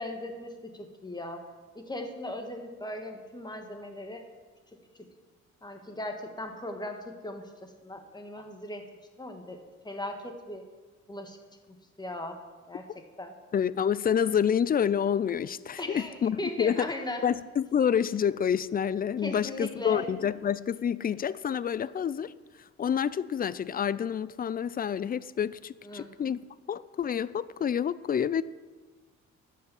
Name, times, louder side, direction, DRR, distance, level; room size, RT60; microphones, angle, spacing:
voice 1, 0.0-1.4 1.7-4.2 5.6-8.8 9.2-9.6 9.8-10.6 11.1-11.4 11.7-12.4 12.7-13.3 15.8-17.2 19.2-20.0 25.8-26.1, left 1 dB, 15° left, 4 dB, 1.5 m, -38 dB
voice 2, 13.5-16.9 17.2-22.3 22.8-26.4 26.7-28.4, left 8 dB, 30° left, 18 dB, 0.4 m, -28 dB
11.0 x 5.6 x 7.1 m, 1.3 s
cardioid pair, 90°, 30 cm